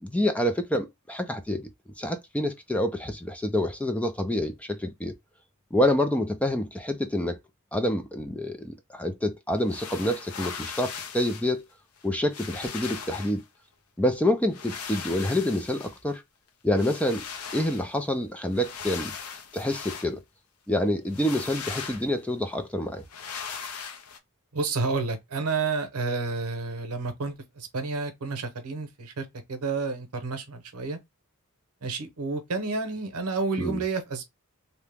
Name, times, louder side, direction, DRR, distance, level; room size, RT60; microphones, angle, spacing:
voice 1, 0.0-1.7 2.0-5.1 5.7-7.4 7.7-11.6 12.0-13.4 14.0-16.2 16.6-17.2 17.5-19.1 19.5-20.2 20.7-23.0 33.6-33.8, left 1 dB, 5° left, 0.3 m, -27 dB
sound 1, 9.6-11.5 12.0-12.1 12.3-13.4 14.5-16.2 16.8-17.9 18.5-20.1 21.1-22.2 23.1-24.2, left 6 dB, 85° left, 0.6 m, -39 dB
voice 2, 24.5-31.0 31.8-34.2, right 4 dB, 90° right, 0.8 m, -30 dB
2.8 x 2.1 x 3.3 m
head